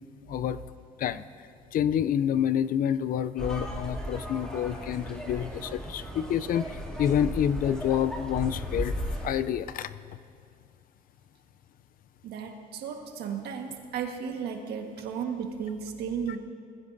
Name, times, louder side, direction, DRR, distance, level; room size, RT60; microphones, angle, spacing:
voice 1, 1.7-8.9 9.2-9.9, left 9 dB, 55° left, 15 dB, 0.5 m, -28 dB
sound 1, 3.4-9.3, equal, 5° left, 2.6 m, -36 dB
voice 2, 12.2-16.4, right 7 dB, 75° right, 4 dB, 1.5 m, -34 dB
20.0 x 15.0 x 2.7 m, 2.4 s
cardioid pair, 110°, 17 cm